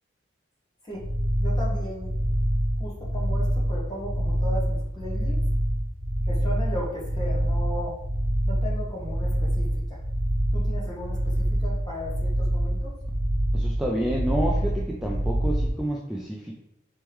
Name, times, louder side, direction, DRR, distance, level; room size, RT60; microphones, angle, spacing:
sound 1, 0.9-15.7, equal, 20° right, 1.5 m, -26 dB
voice 1, 1.4-2.1 2.8-5.4 6.3-8.0 8.5-10.0 10.5-12.9, equal, 20° left, -5 dB, 1.2 m, -36 dB
voice 2, 13.5-16.5, right 1 dB, ahead, -3 dB, 0.3 m, -29 dB
4.3 x 3.1 x 3.5 m, 0.83 s
head